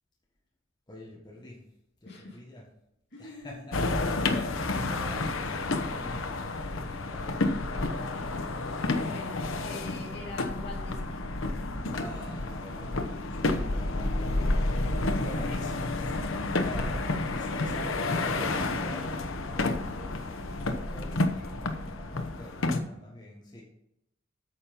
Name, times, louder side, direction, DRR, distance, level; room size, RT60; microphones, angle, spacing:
voice 1, 0.9-1.7 2.0-2.6 3.2-8.7 11.9-14.7 15.2-16.2 16.5-23.6, equal, 20° left, -3 dB, 1.5 m, -45 dB
voice 2, 2.0-2.4 3.1-3.6 9.0-11.3 13.9-14.4 15.4-15.8 16.1-16.5 17.3-17.7, left 2 dB, 55° left, -1 dB, 2.3 m, -44 dB
sound 1, 3.7-22.8, left 2 dB, 85° left, 0.9 m, -30 dB
9.0 x 5.8 x 5.2 m, 0.79 s
head